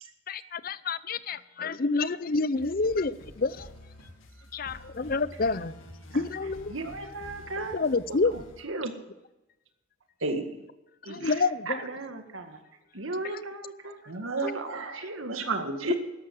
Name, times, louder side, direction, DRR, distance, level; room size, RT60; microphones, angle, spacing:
voice 1, 0.3-3.7 4.5-5.7 6.1-6.8 7.7-8.4 11.1-11.9 13.2-13.4, left 3 dB, 45° left, 0.5 m, -28 dB
sound 1, 2.5-8.6, left 1 dB, 80° left, 2.3 m, -48 dB
voice 2, 6.7-7.8 8.1-8.2 8.6-8.9 11.2-11.3 11.7-12.6 12.9-14.0 14.4-15.3, right 2 dB, 75° right, 1.8 m, -36 dB
voice 3, 10.2-10.6 11.0-11.3 14.1-15.0 15.3-16.0, right 3 dB, 90° right, 2.1 m, -32 dB
13.5 x 11.5 x 7.6 m
head